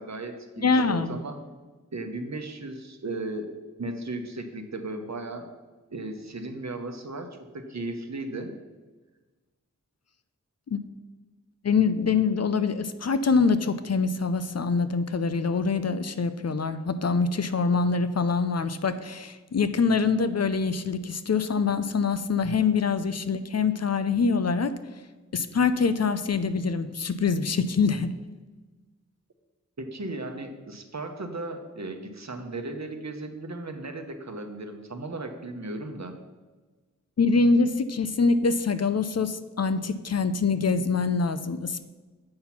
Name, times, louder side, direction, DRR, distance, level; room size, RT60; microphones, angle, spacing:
voice 1, 0.0-1.4 1.9-3.5 3.8-5.5 5.9-7.3 7.5-8.5 22.4-22.6 29.8-36.1, right 2 dB, 60° right, 5 dB, 0.9 m, -36 dB
voice 2, 0.6-1.2 10.7-10.8 11.6-24.7 25.3-28.1 37.2-41.8, left 4 dB, 55° left, 12 dB, 0.5 m, -24 dB
7.6 x 4.2 x 5.7 m, 1.3 s
wide cardioid pair, 40°, 31 cm